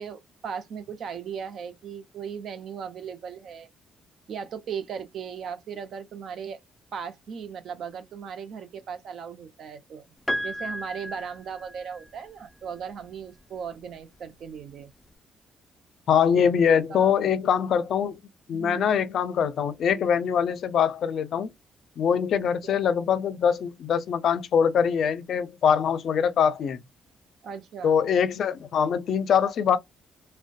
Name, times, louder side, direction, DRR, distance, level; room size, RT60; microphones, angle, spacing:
voice 1, 0.0-3.7 4.3-6.6 6.9-10.1 10.4-14.9 16.3-16.4 16.9-17.1 18.5-18.9 22.4-22.8 27.4-28.0, right 7 dB, 65° right, 0.5 m, -37 dB
Piano, 10.3-12.3 13.6-13.7, equal, 5° left, 0.4 m, -33 dB
voice 2, 16.1-18.2 18.5-21.5 22.0-26.8 27.8-29.8, left 7 dB, 65° left, 0.4 m, -23 dB
2.5 x 2.2 x 2.2 m
cardioid pair, 90°, 0 cm